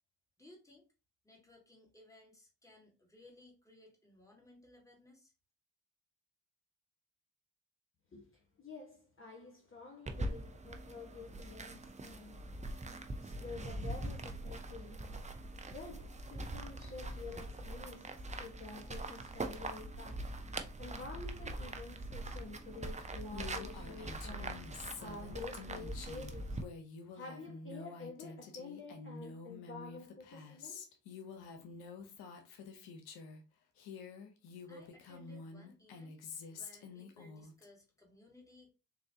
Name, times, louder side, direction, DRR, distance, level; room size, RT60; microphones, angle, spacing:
voice 1, 0.4-0.9 1.2-5.3 34.7-36.2 36.5-38.7, left 1 dB, 10° left, 1.8 m, -60 dB
voice 2, 8.1-15.1 15.4-20.3 20.8-24.6 25.0-26.6 27.1-30.8 31.3-31.4, left 3 dB, 35° left, 1.3 m, -49 dB
sound 1, 10.1-26.6, right 2 dB, 20° right, 0.6 m, -43 dB
Female speech woman speaking, 23.3-33.4 33.8-37.6, left 4 dB, 75° left, 0.8 m, -49 dB
3.9 x 2.6 x 2.8 m
hypercardioid pair, 45°, 37 cm